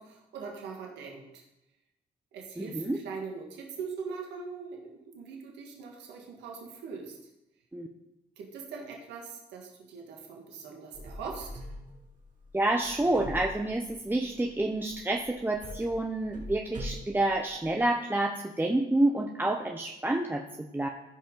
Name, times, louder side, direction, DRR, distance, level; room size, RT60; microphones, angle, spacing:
voice 1, 0.0-1.4 2.3-7.2 8.4-11.6, right 5 dB, 85° right, 0 dB, 1.8 m, -41 dB
voice 2, 2.6-3.0 7.7-7.9 12.5-20.9, right 1 dB, 10° right, 2 dB, 0.8 m, -28 dB
sound 1, 10.9-17.9, equal, 45° right, 3.1 m, -44 dB
15.0 x 5.1 x 3.9 m, 0.92 s
supercardioid pair, 65°, 18 cm